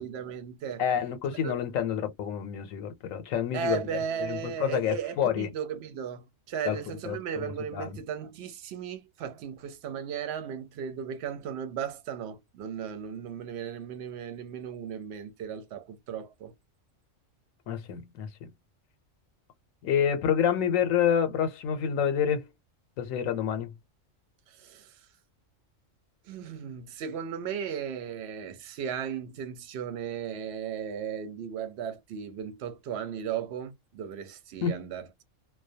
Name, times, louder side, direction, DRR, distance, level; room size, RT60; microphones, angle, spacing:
voice 1, 0.0-0.8 1.3-1.5 3.5-16.5 24.5-25.1 26.2-35.2, right 8 dB, 65° right, 0.8 m, -36 dB
voice 2, 0.8-3.9 4.2-5.5 6.7-6.8 7.0-7.9 17.7-18.5 19.8-22.5 23.0-23.7 34.6-34.9, left 8 dB, 85° left, 1.0 m, -28 dB
2.2 x 2.1 x 2.6 m
omnidirectional pair, 1.3 m